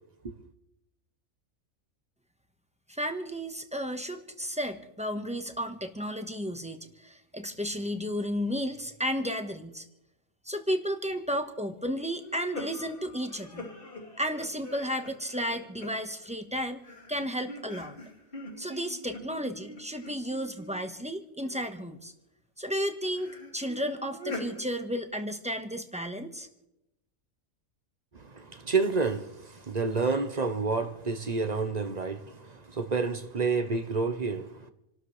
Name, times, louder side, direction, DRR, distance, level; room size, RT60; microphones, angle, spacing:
voice 1, 2.9-9.8 10.4-13.7 14.2-16.8 17.1-17.9 18.6-22.1 22.6-26.5, equal, 5° right, 1.1 m, -33 dB
sound 1, 12.2-16.4 16.8-20.8 21.4-22.0 23.0-24.6, left 1 dB, 40° left, 2.7 m, -44 dB
voice 2, 28.1-34.7, right 4 dB, 35° right, 0.9 m, -29 dB
28.5 x 12.5 x 3.3 m
omnidirectional pair, 1.4 m